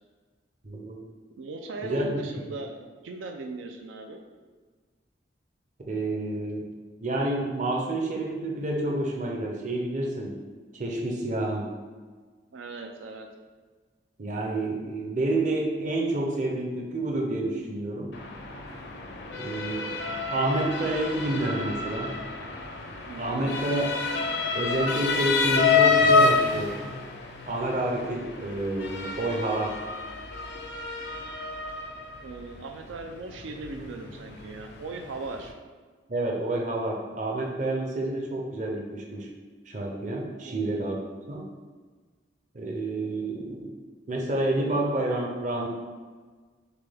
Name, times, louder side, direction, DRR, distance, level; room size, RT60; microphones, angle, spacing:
voice 1, 0.6-1.0 1.8-2.3 5.9-6.7 7.0-10.4 10.7-11.7 14.2-18.1 19.4-19.9 20.3-22.2 23.2-23.9 24.5-26.8 27.5-29.8 36.1-39.3 39.7-41.0 41.3-41.5 42.5-43.8 44.1-45.7, right 2 dB, 40° right, 0 dB, 0.6 m, -29 dB
voice 2, 1.4-4.2 12.5-13.3 23.1-23.5 32.2-35.5 40.4-41.0, right 3 dB, 90° right, 4 dB, 0.4 m, -39 dB
Motor vehicle (road) / Siren, 18.1-35.5, left 4 dB, 60° left, 0.5 m, -28 dB
6.6 x 2.2 x 3.4 m, 1.4 s
head